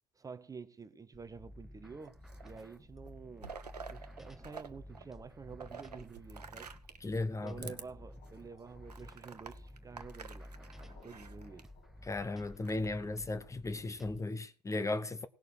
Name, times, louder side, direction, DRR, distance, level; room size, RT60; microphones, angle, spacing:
voice 1, 0.1-3.6 3.9-6.7 7.4-11.7, right 5 dB, 15° right, 1.0 m, -49 dB
sound 1, 1.1-14.2, left 1 dB, ahead, 1.3 m, -53 dB
sound 2, 2.0-2.7 3.0-4.7 4.9-7.1 7.6-7.8 8.3-8.4 8.9-11.7 12.4-13.0, right 6 dB, 80° right, 1.0 m, -49 dB
voice 2, 7.0-7.8 12.0-15.3, left 2 dB, 15° left, 1.0 m, -36 dB
sound 3, 7.7-12.3, left 4 dB, 55° left, 6.2 m, -65 dB
18.0 x 6.7 x 6.6 m
figure-of-eight pair, 70°, 20 cm